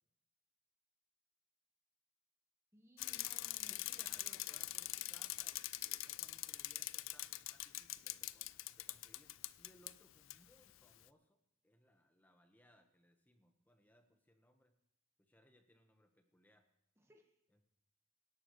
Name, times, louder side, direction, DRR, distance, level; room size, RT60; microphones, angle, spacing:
voice 1, 2.7-4.4 17.0-17.4, equal, 15° right, 3 dB, 1.5 m, -65 dB
Bicycle, 3.0-9.9 10.3-10.4, left 16 dB, 80° left, 0.4 m, -43 dB
voice 2, 3.7-11.4 11.6-14.7 15.2-16.7 17.5-17.6, equal, 10° left, 5 dB, 1.3 m, -69 dB
24.0 x 11.0 x 3.2 m, 0.82 s
head